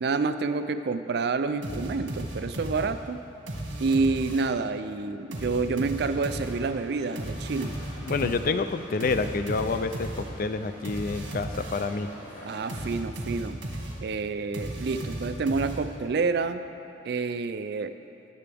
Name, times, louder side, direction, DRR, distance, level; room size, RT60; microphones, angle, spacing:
voice 1, 0.0-3.2 3.8-7.8 8.2-8.3 12.4-13.6 14.0-16.7 17.0-18.0, right 4 dB, 55° right, 10 dB, 0.4 m, -28 dB
sound 1, 1.6-4.7 5.3-12.0 12.7-16.2, right 1 dB, 70° right, 1.5 m, -36 dB
sound 2, 6.0-12.9, left 1 dB, 90° left, 2.7 m, -47 dB
voice 2, 8.0-12.1, left 4 dB, 45° left, 10 dB, 0.4 m, -28 dB
18.0 x 6.8 x 3.5 m, 2.8 s
head